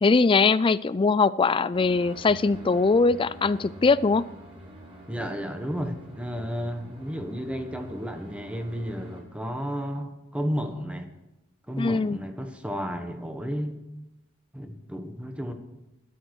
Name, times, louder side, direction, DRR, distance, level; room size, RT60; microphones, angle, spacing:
voice 1, 0.0-4.3 11.8-12.2, left 4 dB, 25° left, 17 dB, 0.3 m, -21 dB
sound 1, 1.7-9.2, right 1 dB, 25° right, 4.1 m, -46 dB
voice 2, 5.1-11.1 11.7-13.8 14.5-15.5, equal, 5° right, 6 dB, 1.3 m, -32 dB
13.5 x 12.0 x 4.8 m, 0.95 s
head